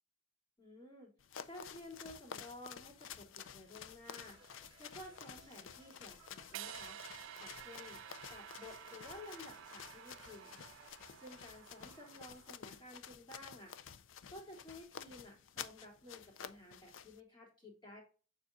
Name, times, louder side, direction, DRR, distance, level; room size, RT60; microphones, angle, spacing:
voice 1, 0.6-1.1 1.4-4.4 4.8-7.0 7.4-8.0 8.3-10.6 11.2-13.7 14.3-18.0, left 1 dB, 25° left, -2 dB, 3.2 m, -53 dB
sound 1, 1.2-17.2, left 8 dB, 90° left, 0.5 m, -52 dB
sound 2, 4.2-10.9, right 4 dB, 25° right, 2.0 m, -64 dB
sound 3, 6.5-12.7, right 10 dB, 90° right, 0.4 m, -52 dB
7.1 x 6.1 x 2.6 m, 0.37 s
head